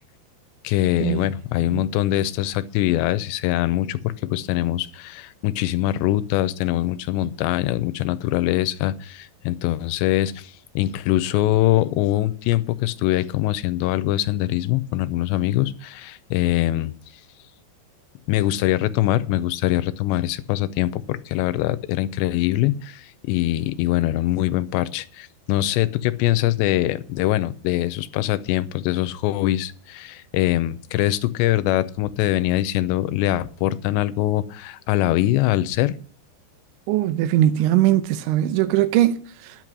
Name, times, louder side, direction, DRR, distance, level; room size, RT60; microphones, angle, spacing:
voice 1, 0.6-16.9 18.3-35.9, left 15 dB, 80° left, 2.7 m, -23 dB
voice 2, 36.9-39.6, right 13 dB, 90° right, 3.2 m, -20 dB
11.0 x 8.4 x 6.1 m
omnidirectional pair, 5.4 m